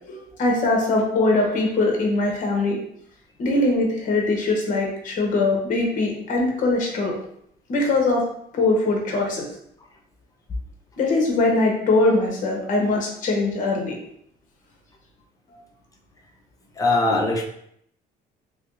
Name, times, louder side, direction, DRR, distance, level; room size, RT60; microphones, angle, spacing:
voice 1, 0.1-2.8 3.4-7.1 7.7-8.2 8.5-9.4 11.0-14.0 17.1-17.2, left 2 dB, 50° left, 0 dB, 0.9 m, -22 dB
voice 2, 16.8-17.5, left 2 dB, 20° left, 0 dB, 0.6 m, -21 dB
3.4 x 2.8 x 2.5 m, 0.71 s
cardioid pair, 110°, 17 cm